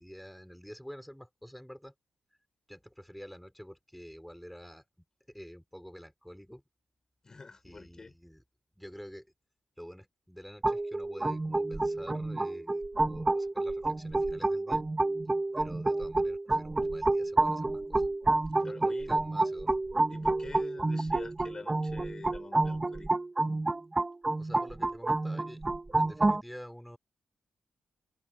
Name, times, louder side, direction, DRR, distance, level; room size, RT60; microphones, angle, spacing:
voice 1, 0.0-1.9 2.7-4.9 5.3-6.6 7.6-8.4 8.7-9.3 9.8-14.8 15.5-18.1 18.6-19.7 24.4-25.6 26.0-27.0, equal, ahead, 4.6 m, -48 dB
voice 2, 7.2-8.1 18.6-19.1 20.1-23.1, left 3 dB, 30° left, 5.3 m, -46 dB
sound 1, 10.6-26.4, right 2 dB, 20° right, 1.2 m, -29 dB
cardioid pair, 120°, 2 cm